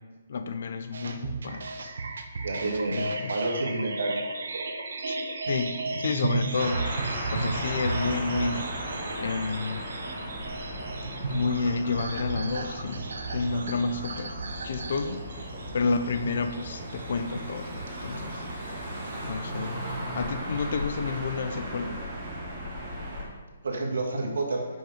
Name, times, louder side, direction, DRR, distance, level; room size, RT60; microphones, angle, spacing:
voice 1, 0.3-1.7 2.9-3.4 5.1-5.2 5.5-6.9 7.3-9.9 11.3-14.3 14.6-17.7 18.0-18.5 19.2-22.1, left 4 dB, 45° left, 9 dB, 0.4 m, -30 dB
sound 1, 0.9-19.7, right 3 dB, 60° right, 0.7 m, -35 dB
voice 2, 2.4-4.2 23.6-24.7, right 2 dB, 80° right, 1 dB, 1.6 m, -29 dB
sound 2, 6.6-23.2, equal, 25° right, 1.6 m, -36 dB
6.2 x 5.3 x 4.9 m, 1.3 s
hypercardioid pair, 180°, 0 cm